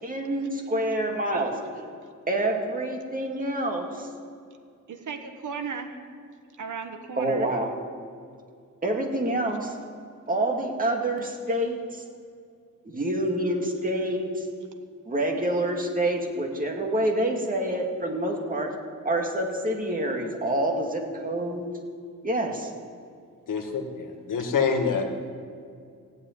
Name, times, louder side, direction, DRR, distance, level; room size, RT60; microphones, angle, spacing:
voice 1, 0.0-1.6 2.3-4.1 7.2-7.7 8.8-9.8 10.3-12.0 12.8-14.5 15.1-18.7 19.0-21.7 22.2-22.7, right 1 dB, 25° right, 2 dB, 1.9 m, -27 dB
voice 2, 4.9-6.0 6.6-7.5, right 5 dB, 70° right, 6 dB, 1.4 m, -35 dB
voice 3, 23.5-25.0, left 5 dB, 80° left, 5 dB, 1.7 m, -26 dB
15.5 x 8.1 x 9.4 m, 2.3 s
wide cardioid pair, 165°, 31 cm